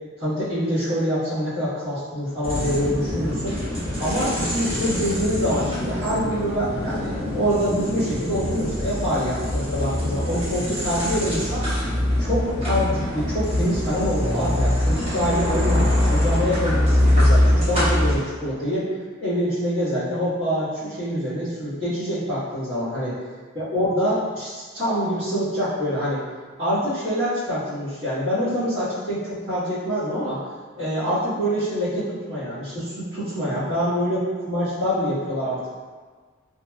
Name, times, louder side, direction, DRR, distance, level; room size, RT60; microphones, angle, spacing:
voice 1, 0.2-3.6 4.0-11.6 12.2-18.9 19.2-23.1 23.5-26.2 26.6-30.4 30.8-35.7, equal, 60° right, -18 dB, 1.5 m, -25 dB
sound 1, 2.4-18.2, left 1 dB, 30° right, 1.0 m, -23 dB
3.2 x 2.7 x 2.3 m, 1.5 s
head